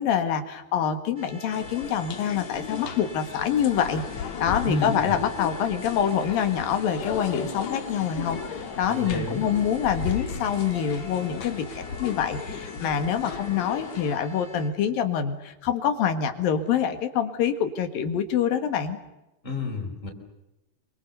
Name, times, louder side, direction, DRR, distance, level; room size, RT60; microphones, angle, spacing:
voice 1, 0.0-4.1 4.4-19.0, left 8 dB, 75° left, 8 dB, 3.5 m, -26 dB
sound 1, 1.2-14.7, equal, 15° right, 2.7 m, -46 dB
sound 2, 1.5-14.2, left 7 dB, 55° left, 2.7 m, -36 dB
sound 3, 2.5-14.9 15.2-15.3, left 3 dB, 35° left, 3.0 m, -46 dB
voice 2, 4.6-5.2 8.9-9.5 19.4-20.1, left 2 dB, 15° left, 0 dB, 4.8 m, -30 dB
27.0 x 25.0 x 6.9 m, 0.94 s
omnidirectional pair, 4.2 m